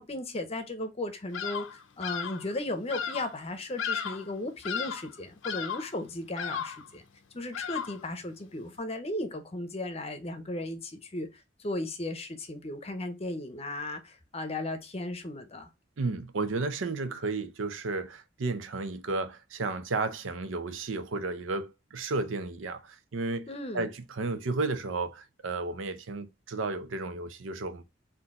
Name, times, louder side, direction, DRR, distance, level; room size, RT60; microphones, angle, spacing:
voice 1, 0.0-7.0 7.3-15.7 23.5-23.9, left 1 dB, 30° left, 0.7 m, -36 dB
Bird vocalization bird call bird song, 1.3-1.8 2.0-2.5 2.9-3.3 3.8-4.3 4.6-5.1 5.4-5.9 6.4-6.9 7.5-8.1, left 7 dB, 75° left, 0.5 m, -34 dB
voice 2, 16.0-23.5 23.7-27.8, right 3 dB, 90° right, 0.6 m, -33 dB
4.3 x 2.7 x 3.6 m
head